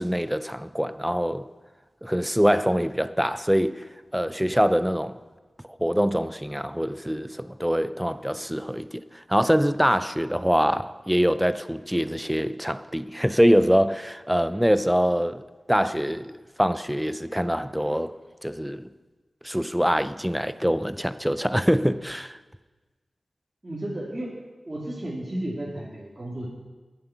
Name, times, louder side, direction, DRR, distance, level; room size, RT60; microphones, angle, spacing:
voice 1, 0.0-1.5 2.0-5.2 5.8-18.2 18.4-18.9 19.4-22.4, equal, 5° right, 0.5 m, -24 dB
voice 2, 23.6-24.3 24.6-26.5, right 1 dB, 30° right, 2.7 m, -33 dB
21.5 x 7.7 x 5.9 m
wide cardioid pair, 105°, 0 cm